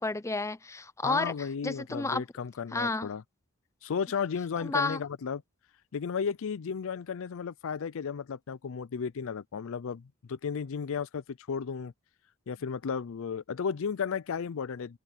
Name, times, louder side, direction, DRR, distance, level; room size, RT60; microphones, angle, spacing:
voice 1, 0.0-1.3 1.6-2.2 2.7-3.1 4.6-5.0, left 3 dB, 15° left, 0.6 m, -31 dB
voice 2, 1.0-3.2 3.8-5.4 5.9-11.9 12.5-15.0, left 6 dB, 65° left, 0.4 m, -34 dB
open air
head